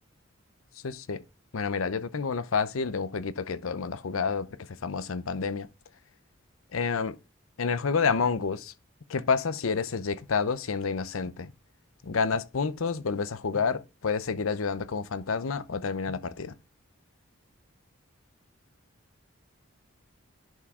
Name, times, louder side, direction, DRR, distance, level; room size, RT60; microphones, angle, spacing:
voice 1, 0.8-1.2 1.5-4.5 4.8-5.7 6.7-7.1 7.6-8.7 9.1-11.5 12.0-16.5, left 5 dB, 90° left, 0.7 m, -29 dB
10.5 x 4.8 x 3.7 m
head